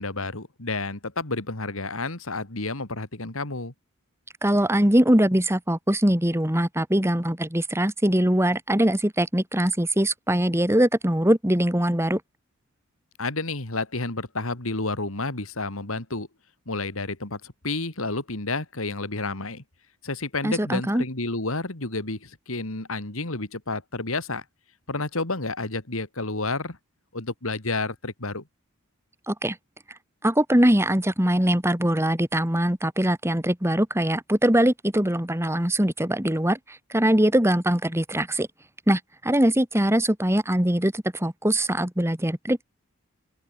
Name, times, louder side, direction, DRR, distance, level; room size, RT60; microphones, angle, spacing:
voice 1, 0.0-3.7 13.2-16.3 16.7-19.6 20.0-24.4 24.9-26.8 27.1-28.4, left 3 dB, 70° left, 3.0 m, -30 dB
voice 2, 4.4-12.2 20.4-21.0 29.3-29.6 30.2-38.5 38.9-42.6, right 1 dB, 10° right, 2.9 m, -22 dB
open air
head